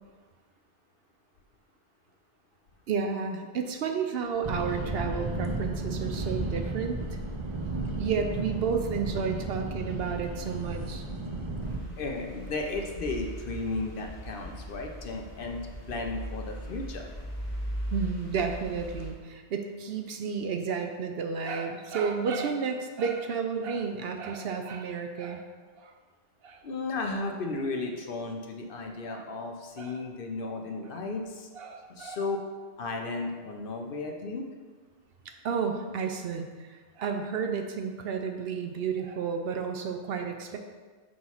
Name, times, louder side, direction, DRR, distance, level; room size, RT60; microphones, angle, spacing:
voice 1, 2.9-7.0 8.0-11.0 17.9-25.4 25.8-25.9 26.4-26.6 29.1-29.2 29.8-30.0 31.5-32.3 35.4-40.6, right 5 dB, 65° right, 5 dB, 0.8 m, -32 dB
sound 1, 4.4-11.8, right 2 dB, 35° right, 0.5 m, -33 dB
sound 2, 11.6-19.1, equal, 40° left, 1.8 m, -39 dB
voice 2, 12.0-15.6 15.9-17.1 26.6-31.5 31.9-32.4 32.8-34.4, left 3 dB, 60° left, 2 dB, 0.8 m, -34 dB
6.2 x 3.1 x 5.5 m, 1.4 s
omnidirectional pair, 1.1 m